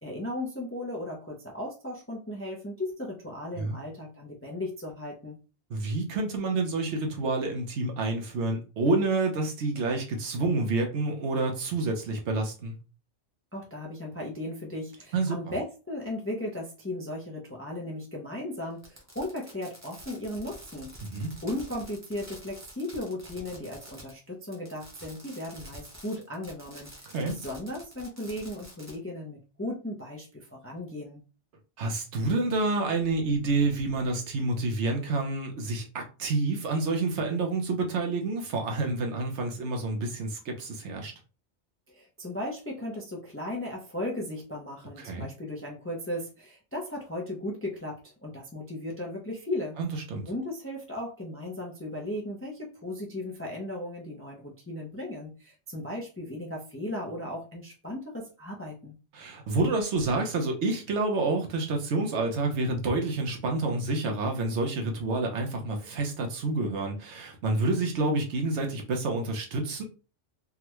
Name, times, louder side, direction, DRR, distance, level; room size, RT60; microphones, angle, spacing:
voice 1, 0.0-5.4 13.5-20.9 21.4-31.2 41.9-49.8 50.3-59.0, left 1 dB, 20° left, 0.4 m, -36 dB
voice 2, 5.7-12.8 15.1-15.4 21.0-21.3 27.1-27.3 31.8-41.1 45.0-45.3 49.8-50.2 59.1-69.8, right 3 dB, 70° right, 1.0 m, -28 dB
Fireworks, 18.8-24.2 24.4-28.9, equal, 15° right, 0.8 m, -48 dB
3.6 x 2.1 x 3.0 m
omnidirectional pair, 1.2 m